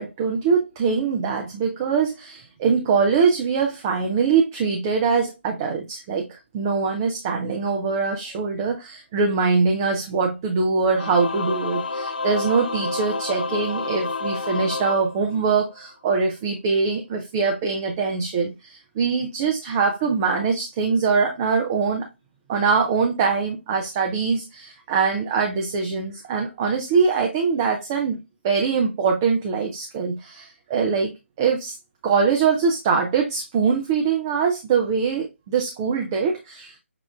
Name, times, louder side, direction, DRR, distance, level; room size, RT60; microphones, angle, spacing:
voice 1, 0.0-22.1 22.5-28.2 28.4-31.8 32.0-36.8, right 5 dB, 15° right, 0.4 m, -23 dB
Singing / Musical instrument, 10.9-15.8, left 3 dB, 40° left, 0.4 m, -29 dB
6.4 x 2.4 x 2.2 m
figure-of-eight pair, 150°, 7 cm